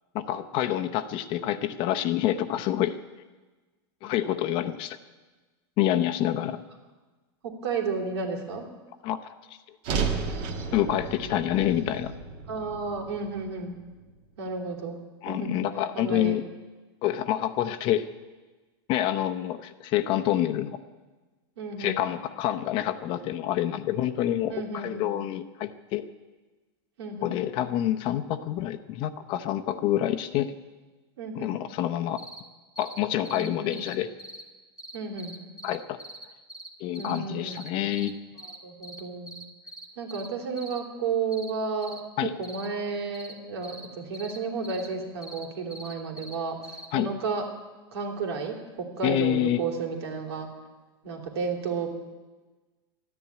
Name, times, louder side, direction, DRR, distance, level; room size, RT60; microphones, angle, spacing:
voice 1, 0.1-3.0 4.0-5.0 5.8-6.6 9.0-9.2 10.7-12.1 15.2-16.4 17.0-18.1 18.9-20.8 21.8-26.0 27.2-30.5 31.3-32.2 32.8-34.1 35.6-36.0 36.8-38.1 42.2-42.3 46.9-47.1 49.0-49.6, left 12 dB, 35° left, 10 dB, 0.8 m, -27 dB
voice 2, 7.4-8.7 12.5-13.8 14.4-15.0 15.3-15.7 15.9-16.4 21.6-22.0 23.9-24.2 24.5-25.1 27.0-27.3 31.2-31.6 33.3-33.8 34.9-35.3 37.0-37.7 38.6-39.3 40.0-46.6 46.9-47.5 47.9-50.5 51.0-51.9, right 4 dB, 75° right, 2 dB, 3.2 m, -32 dB
sound 1, 9.8-14.1, right 5 dB, 40° right, 1.9 m, -33 dB
sound 2, 32.2-32.4 32.8-33.0 33.2-34.4 34.8-36.7 36.9-37.2 37.5-38.1 38.4-38.6 38.8-39.0 39.3-40.3 40.6-40.8 41.3-41.5 41.8-42.0 42.4-42.7 43.1-43.3 43.6-43.9 44.1-44.4 44.6-44.9 45.2-46.4 46.6-46.9, right 1 dB, 5° right, 1.5 m, -42 dB
13.0 x 10.5 x 9.6 m, 1.3 s
supercardioid pair, 150°, 14 cm